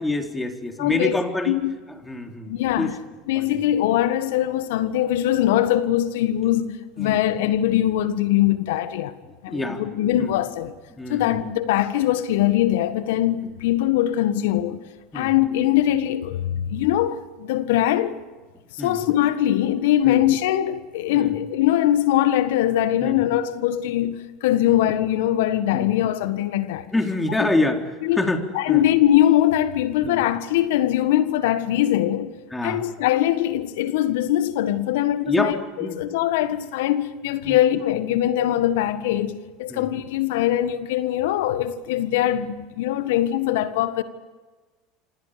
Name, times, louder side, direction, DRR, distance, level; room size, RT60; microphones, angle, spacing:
voice 1, 0.0-1.6 2.0-2.9 3.4-3.6 7.0-7.2 9.3-9.8 10.2-10.3 11.0-11.4 15.1-15.3 18.8-19.0 20.0-20.2 21.1-21.3 23.0-23.2 24.6-24.7 25.7-25.9 26.9-27.9 28.2-28.4 28.7-28.8 30.0-30.2 32.5-32.8 35.2-36.0 37.4-37.6 39.7-39.9, left 2 dB, 10° left, 3.8 m, -26 dB
voice 2, 0.8-1.2 1.5-1.7 2.5-2.9 3.3-9.2 9.4-10.7 11.1-14.8 15.1-18.2 18.7-26.9 27.4-27.5 28.0-28.3 28.5-32.3 32.6-44.0, left 12 dB, 70° left, 1.6 m, -22 dB
28.5 x 26.5 x 5.2 m
hypercardioid pair, 80°, 0 cm